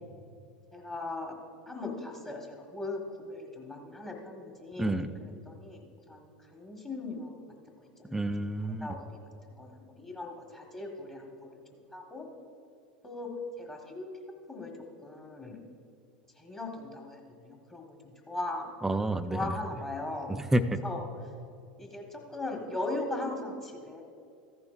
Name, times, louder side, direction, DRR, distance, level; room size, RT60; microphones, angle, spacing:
voice 1, 0.7-1.3 1.7-7.4 7.7-8.3 8.6-9.2 9.6-12.3 13.0-13.3 13.6-14.1 14.5-14.7 15.0-15.6 16.4-18.7 19.3-20.4 20.8-21.1 21.8-24.0, left 2 dB, 15° left, 1 dB, 1.5 m, -39 dB
voice 2, 4.8-5.1 8.1-8.9 18.8-19.5 20.3-20.8, right 1 dB, 10° right, 11 dB, 0.5 m, -29 dB
14.5 x 10.5 x 2.5 m, 2.4 s
figure-of-eight pair, 80°, 4 cm